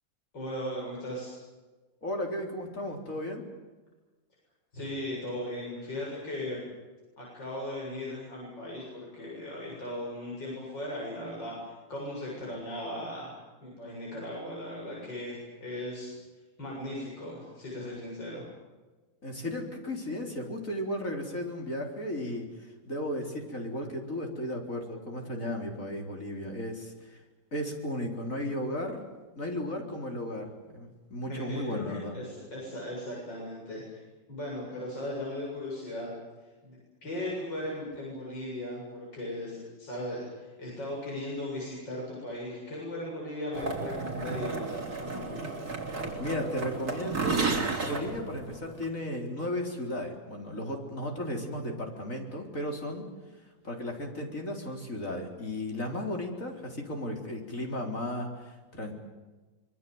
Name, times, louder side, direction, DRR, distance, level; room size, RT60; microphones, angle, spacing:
voice 1, 0.3-1.3 4.7-6.6 7.2-13.3 13.6-16.1 16.6-18.5 31.3-34.0 34.3-36.1 36.4-45.5, left 1 dB, 65° left, -4 dB, 8.3 m, -37 dB
voice 2, 2.0-3.4 19.2-27.2 27.5-29.0 29.3-32.2 46.2-53.1 53.6-59.0, left 1 dB, 40° left, 2 dB, 4.4 m, -35 dB
sound 1, 43.5-48.9, right 4 dB, 50° right, 4.4 m, -33 dB
25.5 x 23.0 x 8.0 m, 1.3 s
omnidirectional pair, 2.1 m